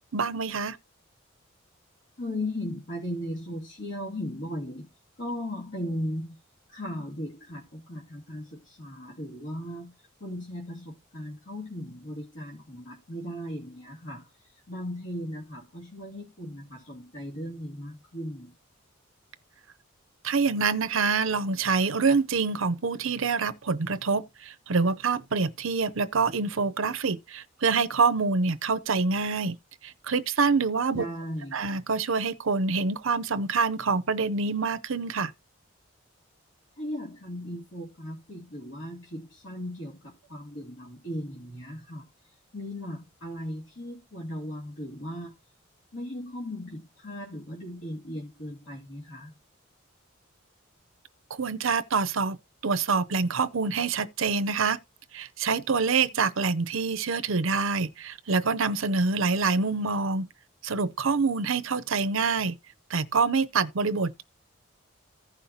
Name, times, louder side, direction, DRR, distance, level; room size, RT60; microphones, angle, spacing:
voice 1, 0.1-0.8 20.2-29.6 29.8-31.0 31.5-35.3 51.3-52.4 52.6-54.8 55.1-60.3 60.6-62.6 62.9-64.2, right 4 dB, 70° right, 0.7 m, -26 dB
voice 2, 2.2-4.9 5.2-6.4 6.7-9.9 10.2-14.3 14.7-18.5 30.9-31.6 36.8-42.1 42.5-45.4 45.9-49.3, left 1 dB, 65° left, 2.4 m, -37 dB
15.0 x 5.7 x 2.8 m
head